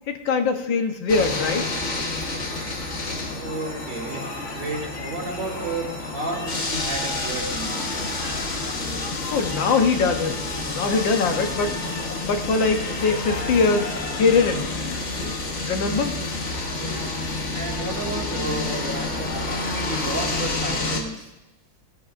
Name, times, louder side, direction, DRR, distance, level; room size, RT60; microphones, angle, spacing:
voice 1, 0.1-1.7 9.3-10.4 10.7-11.7 12.2-14.7 15.2-15.4 15.6-16.2, left 4 dB, 80° left, 5 dB, 1.8 m, -22 dB
sound 1, 1.1-21.0, left 2 dB, 45° left, 1.6 m, -29 dB
voice 2, 3.3-7.8 16.7-17.1 17.5-19.2 19.9-21.3, right 2 dB, 70° right, -2 dB, 3.5 m, -32 dB
19.5 x 13.0 x 2.5 m, 1.0 s
omnidirectional pair, 2.0 m